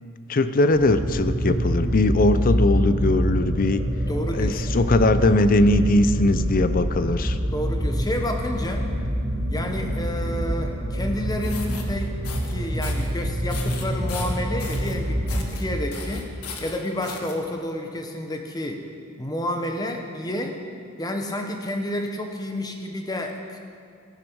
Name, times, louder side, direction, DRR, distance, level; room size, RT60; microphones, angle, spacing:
voice 1, 0.3-3.8 4.3-7.4, left 2 dB, 40° left, 12 dB, 0.5 m, -20 dB
sound 1, 0.7-16.1, equal, 30° right, 1.3 m, -26 dB
voice 2, 4.1-4.7 7.5-8.9 9.5-12.2 12.4-16.3 16.6-18.8 19.2-20.6 21.0-23.6, left 1 dB, 15° left, 3 dB, 1.0 m, -30 dB
sound 2, 11.3-11.8 12.2-12.5 12.8-13.1 13.5-15.0 15.3-15.6 15.9-17.3, left 5 dB, 85° left, 1.4 m, -37 dB
14.5 x 10.5 x 4.7 m, 2.2 s
head